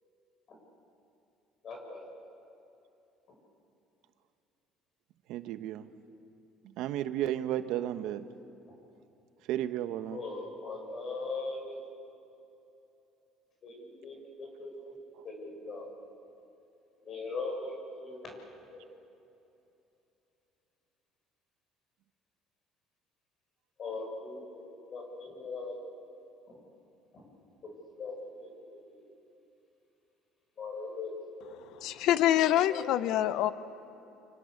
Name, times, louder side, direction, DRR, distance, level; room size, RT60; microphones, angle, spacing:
voice 1, 1.6-2.1 3.3-3.4 8.7-8.8 10.1-11.8 13.6-15.0 15.2-15.9 17.0-18.9 23.8-25.8 26.5-26.6 27.1-27.3 27.6-29.1 30.6-31.8 32.7-32.9, left 3 dB, 45° left, 1 dB, 7.3 m, -41 dB
voice 2, 5.3-5.9 6.8-8.3 9.5-10.2, right 12 dB, 75° right, 10 dB, 1.1 m, -33 dB
voice 3, 31.8-33.5, left 12 dB, 70° left, 13 dB, 0.9 m, -25 dB
28.5 x 25.5 x 6.7 m, 2.8 s
supercardioid pair, 95°, 0 cm